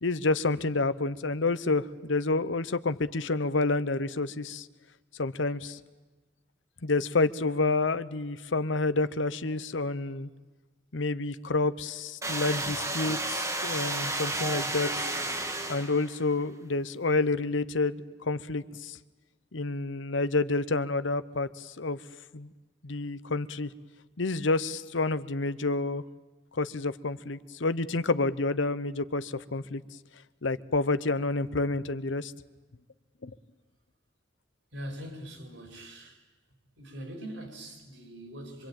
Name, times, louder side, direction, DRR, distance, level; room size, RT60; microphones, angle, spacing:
voice 1, 0.0-4.7 5.1-5.8 6.8-10.3 10.9-15.1 15.7-19.0 19.5-22.0 22.3-22.5 22.8-23.7 24.2-26.0 26.5-29.8 30.4-32.3 33.2-33.4, left 3 dB, 80° left, 0.9 m, -29 dB
sound 1, 12.2-16.2, right 2 dB, 15° right, 1.5 m, -32 dB
voice 2, 34.7-36.2 36.8-38.7, equal, 80° right, 5.3 m, -42 dB
25.0 x 24.5 x 9.0 m
head